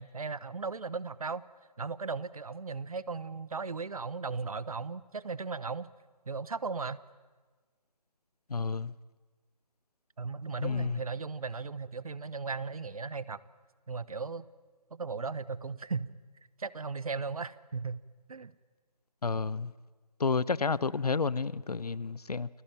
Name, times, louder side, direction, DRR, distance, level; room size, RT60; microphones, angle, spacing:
voice 1, 0.0-1.4 1.8-5.9 6.3-7.0 10.2-13.4 13.9-14.5 14.9-16.1 16.6-18.0 18.3-18.5, right 4 dB, 60° right, 1.1 m, -36 dB
voice 2, 8.5-8.9 10.6-11.0 19.2-19.7 20.2-22.5, left 4 dB, 65° left, 0.8 m, -30 dB
29.5 x 20.0 x 8.9 m
figure-of-eight pair, 155°, 21 cm